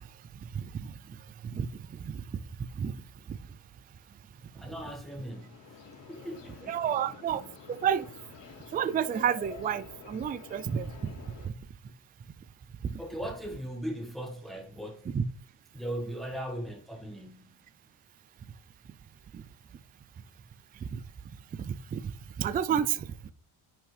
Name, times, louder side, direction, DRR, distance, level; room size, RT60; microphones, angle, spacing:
voice 1, 0.6-0.9 1.5-1.7 2.0-2.2 2.8-3.0 3.3-3.4 6.7-7.4 7.8-8.1 8.7-11.1 12.9-13.0 15.1-15.2 19.3-19.4 20.9-21.0 21.7-22.0 22.4-23.1, right 8 dB, 20° right, 0.3 m, -30 dB
voice 2, 4.5-5.8 6.1-7.5 13.0-15.1 15.7-17.6, equal, ahead, 1.8 m, -39 dB
sound 1, 5.0-11.5, left 5 dB, 45° left, 3.9 m, -49 dB
9.9 x 6.0 x 3.3 m
cardioid pair, 140°, 43 cm